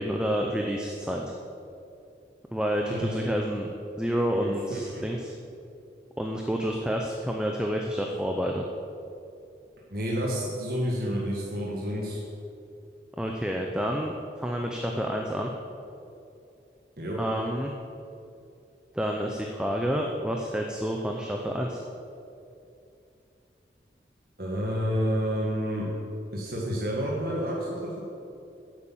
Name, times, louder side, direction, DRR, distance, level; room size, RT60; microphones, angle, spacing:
voice 1, 0.0-1.3 2.5-3.7 4.0-5.3 6.2-8.7 13.2-14.1 14.4-15.5 17.2-17.7 18.9-21.8, equal, 5° right, 1 dB, 0.6 m, -29 dB
voice 2, 4.3-5.1 9.9-12.2 17.0-17.2 24.4-25.9 26.3-28.0, equal, 55° right, -4 dB, 1.6 m, -29 dB
10.0 x 8.4 x 7.4 m, 2.7 s
head